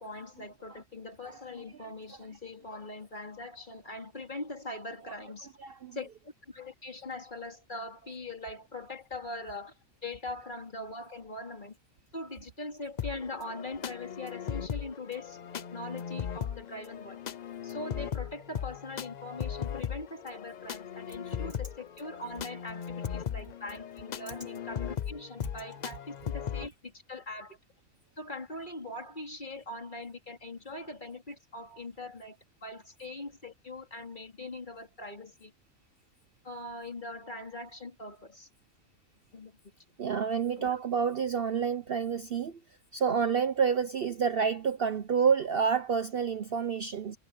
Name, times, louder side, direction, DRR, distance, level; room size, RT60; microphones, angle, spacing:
voice 1, 0.0-5.6 5.9-11.8 12.1-17.2 17.6-27.6 28.2-35.5 36.4-38.5 39.3-39.6 40.6-40.7, left 2 dB, 35° left, 3.2 m, -42 dB
voice 2, 5.6-6.0 40.0-42.6 42.9-47.2, right 6 dB, 50° right, 0.8 m, -28 dB
sound 1, 13.0-26.7, left 8 dB, 55° left, 0.5 m, -38 dB
omnidirectional pair, 1.4 m